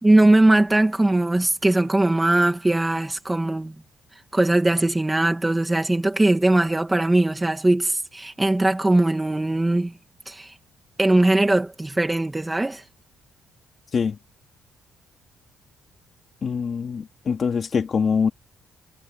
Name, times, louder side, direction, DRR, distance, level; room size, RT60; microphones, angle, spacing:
voice 1, 0.0-3.7 4.3-9.9 10.3-10.5 11.0-12.8, right 2 dB, 10° right, 2.4 m, -20 dB
voice 2, 16.4-18.3, left 6 dB, 30° left, 3.2 m, -24 dB
cardioid pair, 175°, 0 cm